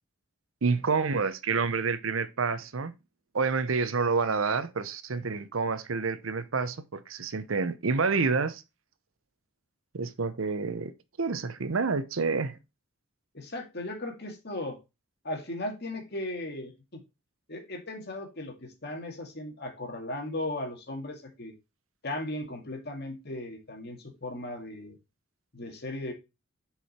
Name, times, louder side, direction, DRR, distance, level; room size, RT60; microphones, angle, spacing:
voice 1, 0.6-2.9 3.3-8.6 9.9-10.9 11.2-12.6, right 4 dB, 80° right, 0.8 m, -28 dB
voice 2, 13.3-14.8 15.2-17.0 17.5-21.5 22.0-25.0 25.5-26.1, left 1 dB, 55° left, 2.0 m, -37 dB
6.6 x 4.9 x 4.3 m
head